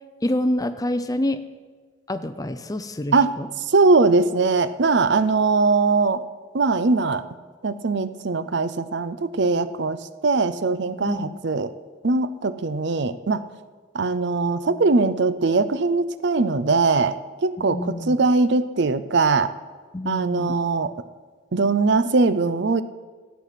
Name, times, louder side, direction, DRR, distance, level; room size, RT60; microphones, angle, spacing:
voice 1, 0.2-1.4 2.1-3.5 11.0-11.3 17.6-18.2 19.9-20.5, left 1 dB, 15° left, 11 dB, 0.5 m, -27 dB
voice 2, 3.7-6.2 6.5-7.2 7.6-11.7 12.0-13.4 13.9-17.1 17.4-19.5 20.0-20.9 21.5-22.8, right 3 dB, 55° right, 13 dB, 0.5 m, -21 dB
13.5 x 9.1 x 5.9 m, 1.5 s
head